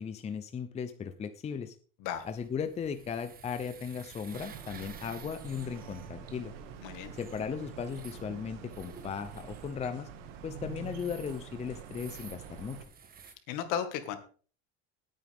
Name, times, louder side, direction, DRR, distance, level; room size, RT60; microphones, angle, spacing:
voice 1, 0.0-1.8 2.3-6.5 7.2-10.1 10.4-12.8, left 6 dB, 20° left, 10 dB, 0.7 m, -37 dB
sound 1, 2.1-13.3, right 6 dB, 25° right, 1.5 m, -54 dB
sound 2, 4.3-12.9, right 7 dB, 85° right, 2.1 m, -46 dB
voice 2, 6.8-7.1 13.5-14.2, left 9 dB, 60° left, 9 dB, 2.1 m, -34 dB
18.0 x 9.0 x 3.6 m, 0.41 s
cardioid pair, 145°, 35 cm